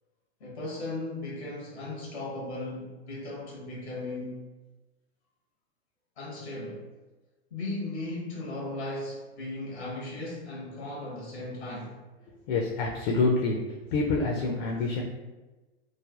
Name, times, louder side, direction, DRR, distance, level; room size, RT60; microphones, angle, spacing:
voice 1, 0.4-4.4 6.2-6.8 7.5-12.0, left 2 dB, 90° left, -4 dB, 1.1 m, -36 dB
voice 2, 12.5-13.6 13.9-15.0, left 3 dB, 50° left, 0 dB, 0.5 m, -26 dB
3.2 x 2.1 x 2.3 m, 1.2 s
hypercardioid pair, 115°, 32 cm